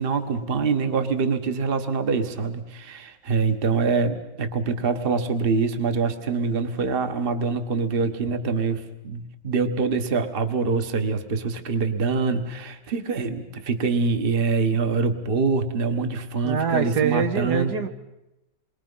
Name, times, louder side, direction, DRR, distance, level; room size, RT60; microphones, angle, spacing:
voice 1, 0.0-17.7, right 4 dB, 35° right, 8 dB, 1.4 m, -25 dB
voice 2, 16.4-17.9, right 6 dB, 65° right, 6 dB, 1.7 m, -24 dB
27.5 x 22.5 x 5.6 m, 0.92 s
omnidirectional pair, 1.9 m